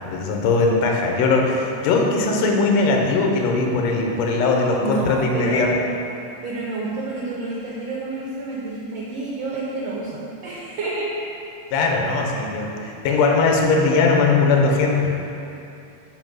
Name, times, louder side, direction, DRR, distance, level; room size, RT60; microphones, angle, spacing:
voice 1, 0.0-5.7 11.7-15.3, left 3 dB, 75° left, 0 dB, 1.7 m, -20 dB
voice 2, 4.8-5.7 6.4-11.3, right 2 dB, 80° right, -4 dB, 1.5 m, -29 dB
5.8 x 4.8 x 6.2 m, 2.7 s
omnidirectional pair, 3.7 m